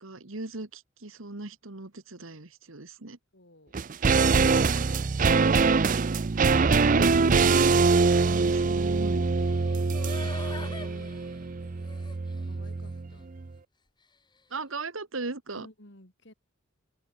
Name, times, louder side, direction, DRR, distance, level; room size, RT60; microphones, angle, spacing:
voice 1, 0.0-3.2 6.4-7.8 8.3-9.2 14.5-15.7, right 2 dB, 70° right, 1.7 m, -36 dB
voice 2, 3.3-3.8 9.3-9.5 9.8-11.1 12.4-13.3 15.6-16.3, left 1 dB, 55° left, 3.8 m, -53 dB
sound 1, 3.7-13.1 13.4-13.5, right 4 dB, 40° right, 0.5 m, -24 dB
sound 2, 9.4-12.4 12.9-13.0, left 3 dB, 20° left, 1.6 m, -43 dB
open air
head